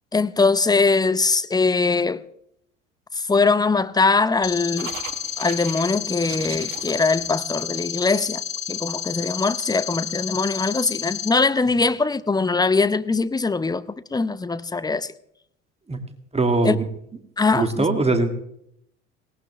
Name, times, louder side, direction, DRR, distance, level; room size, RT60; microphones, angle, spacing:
voice 1, 0.1-2.2 3.1-4.9 5.4-8.4 8.7-13.8 14.1-15.1 16.6-16.8 17.4-17.9, left 4 dB, 10° left, 0.7 m, -21 dB
sound 1, 4.4-11.3, left 9 dB, 45° left, 1.6 m, -31 dB
sound 2, 4.8-8.1, right 9 dB, 80° right, 1.2 m, -39 dB
voice 2, 16.3-16.8 17.5-18.3, right 3 dB, 15° right, 2.2 m, -21 dB
19.0 x 18.0 x 3.3 m
figure-of-eight pair, 65°, 38 cm